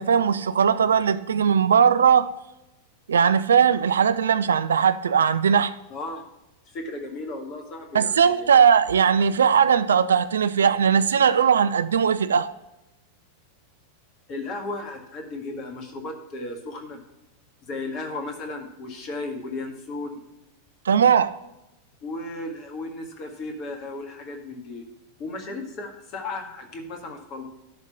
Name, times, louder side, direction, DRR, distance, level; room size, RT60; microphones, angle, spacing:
voice 1, 0.0-2.3 3.1-5.7 7.9-12.5 20.9-21.3, right 7 dB, 70° right, 0.4 m, -19 dB
voice 2, 5.9-6.2 6.7-8.6 14.3-17.0 17.7-20.2 22.0-24.8 25.2-27.4, left 2 dB, 35° left, 1.8 m, -35 dB
11.0 x 3.7 x 7.0 m
figure-of-eight pair, 90°, 0 cm